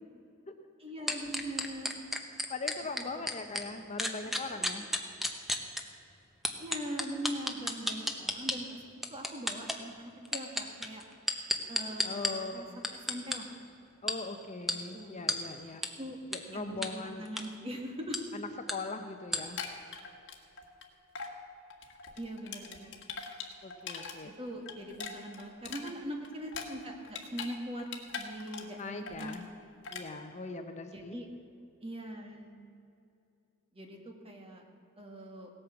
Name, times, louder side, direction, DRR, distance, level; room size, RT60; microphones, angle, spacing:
voice 1, 0.8-2.0 3.7-3.9 6.6-8.7 9.1-11.0 11.7-13.5 14.9-15.3 16.0-16.2 16.5-18.2 22.2-23.0 24.4-27.9 28.2-29.5 30.9-31.3 31.8-32.5 33.7-34.6 35.0-35.5, equal, 25° right, 2 dB, 1.8 m, -41 dB
sound 1, 1.1-3.6 4.0-5.8 6.4-8.6 9.0-9.8 10.3-12.3 12.8-13.4 14.1-14.2 14.7-14.8 15.3-15.4 15.8-15.9 16.3-16.4 16.8-16.9 17.3-17.5 18.1-18.2 18.7-18.8 19.3-19.4, equal, ahead, 0.9 m, -31 dB
voice 2, 2.5-4.9 12.0-12.9 14.0-15.8 16.3-17.3 18.3-19.6 23.6-24.3 28.8-29.4 29.9-31.2, left 3 dB, 35° left, 6 dB, 0.7 m, -40 dB
sound 2, 19.4-20.8 21.2-21.4 21.7-24.2 24.5-27.5 27.8-28.8 29.1-29.4 29.8-30.1, left 6 dB, 60° left, 1.5 m, -42 dB
17.0 x 8.9 x 7.0 m, 2.6 s
head